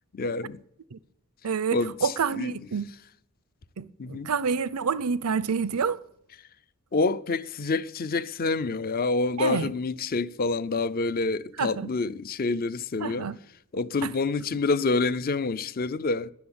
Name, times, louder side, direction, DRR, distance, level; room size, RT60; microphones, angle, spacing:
voice 1, 0.1-0.6 1.7-2.5 4.0-4.3 6.9-13.3 13.7-16.3, left 3 dB, 40° left, 0.5 m, -27 dB
voice 2, 1.4-2.9 3.8-6.0 9.4-9.7 11.6-11.9 13.0-13.4 14.0-14.1, right 6 dB, 90° right, 0.7 m, -28 dB
13.0 x 10.5 x 8.7 m
head